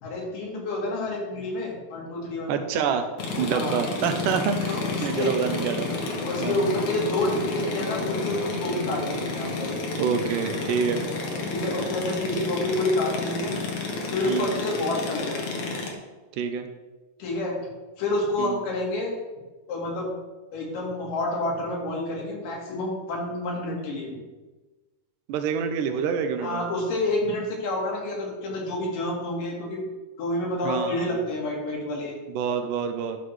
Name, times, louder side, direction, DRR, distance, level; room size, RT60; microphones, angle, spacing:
voice 1, 0.0-2.5 3.5-3.8 4.6-5.3 6.3-9.7 11.5-13.6 14.1-15.5 17.2-17.6 18.0-19.1 19.7-20.1 20.5-24.1 26.4-29.8 30.2-32.1, left 2 dB, 80° left, -2 dB, 3.4 m, -28 dB
voice 2, 2.5-3.1 3.4-6.1 6.4-6.7 10.0-11.0 14.3-14.6 16.4-16.7 18.4-18.6 25.3-26.6 30.6-31.1 32.3-33.2, right 7 dB, 80° right, 7 dB, 2.2 m, -27 dB
sound 1, 3.2-15.9, left 3 dB, 60° left, 1.7 m, -30 dB
11.5 x 6.1 x 3.2 m, 1.2 s
omnidirectional pair, 3.8 m